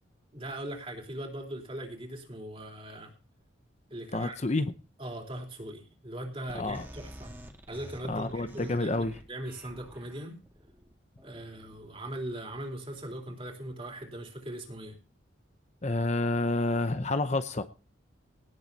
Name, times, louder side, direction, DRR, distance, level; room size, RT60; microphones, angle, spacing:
voice 1, 0.3-3.1 3.9-4.4 5.0-7.3 7.7-10.4 11.2-15.0, right 1 dB, 30° right, 2 dB, 3.6 m, -40 dB
voice 2, 4.1-4.7 6.5-6.8 8.1-9.2 15.8-17.6, left 2 dB, 35° left, 10 dB, 0.7 m, -29 dB
sound 1, 6.5-12.9, equal, 10° right, 1.9 m, -50 dB
18.0 x 7.5 x 4.1 m, 0.34 s
head